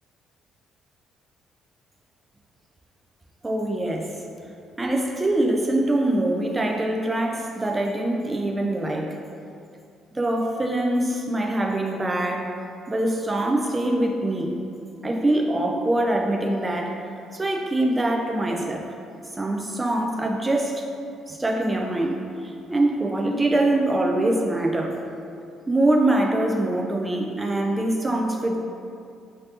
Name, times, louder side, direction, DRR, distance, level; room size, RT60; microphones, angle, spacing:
voice 1, 3.4-4.1 4.8-9.1 10.1-12.5 12.9-14.6 15.0-17.0 17.3-18.8 19.4-20.9 21.3-25.0 25.7-28.6, right 1 dB, 20° right, 1 dB, 0.4 m, -24 dB
3.2 x 2.7 x 2.8 m, 2.5 s
hypercardioid pair, 55°, 0 cm